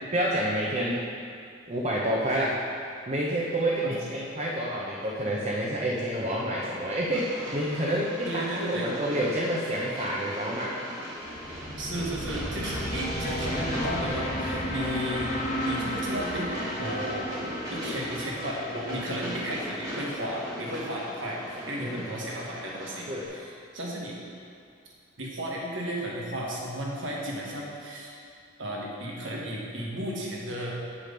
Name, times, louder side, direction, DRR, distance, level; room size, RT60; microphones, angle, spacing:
voice 1, 0.1-1.1 1.7-2.6 3.1-10.8 21.8-22.0 23.1-23.3, right 1 dB, 35° right, -5 dB, 0.8 m, -28 dB
Train, 7.1-23.3, equal, 20° right, 1.9 m, -38 dB
voice 2, 8.3-8.9 11.8-15.4 15.6-24.2 25.2-28.1 28.6-30.7, equal, 85° right, -3 dB, 1.5 m, -34 dB
sound 1, 11.3-20.4, equal, 40° left, 1.2 m, -34 dB
7.5 x 5.0 x 5.2 m, 2.4 s
head